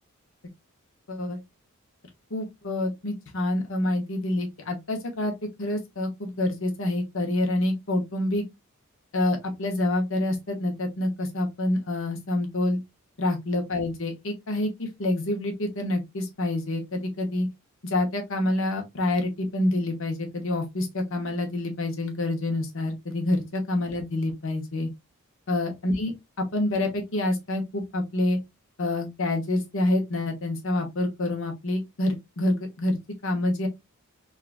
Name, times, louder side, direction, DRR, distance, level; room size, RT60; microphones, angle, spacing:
voice 1, 1.1-1.4 2.3-5.3 5.6-8.4 9.1-12.8 13.2-17.5 17.8-24.9 25.5-26.1 26.5-28.4 28.8-33.7, left 1 dB, 65° left, 1.0 m, -27 dB
3.7 x 2.4 x 2.5 m
head